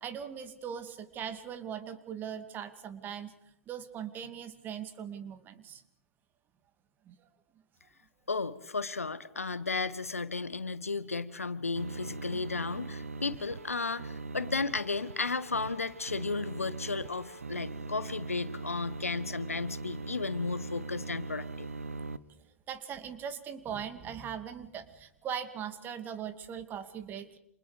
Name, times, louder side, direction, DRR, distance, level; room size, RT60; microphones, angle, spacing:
voice 1, 0.0-3.3 3.7-5.8 7.1-7.2 22.7-27.4, right 8 dB, 25° right, 10 dB, 2.4 m, -40 dB
voice 2, 8.3-21.7, left 4 dB, 80° left, 15 dB, 1.4 m, -34 dB
sound 1, 11.8-22.2, right 3 dB, 70° right, 1.1 m, -41 dB
29.5 x 27.5 x 5.1 m, 0.76 s
figure-of-eight pair, 100°, 8 cm